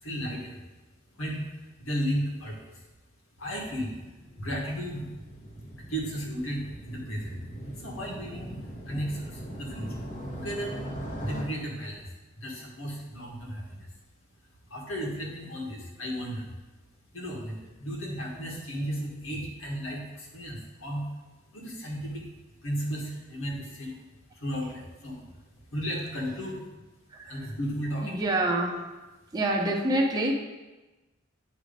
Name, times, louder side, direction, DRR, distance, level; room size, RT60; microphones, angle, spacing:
voice 1, 0.0-0.6 1.2-2.8 3.4-4.0 4.4-5.1 5.7-7.4 7.8-8.5 8.9-10.0 10.3-10.7 11.2-12.1 12.4-13.9 14.7-16.5 17.1-21.0 21.5-22.3 22.6-23.9 24.3-25.3 25.7-26.6 27.2-28.1, equal, 85° left, -2 dB, 1.7 m, -34 dB
Motorcycle, 4.0-11.4, equal, 40° left, 1.1 m, -40 dB
voice 2, 27.1-27.5 28.0-28.9 29.3-30.3, right 1 dB, 20° right, 0 dB, 0.7 m, -27 dB
8.7 x 3.2 x 5.1 m, 1.1 s
head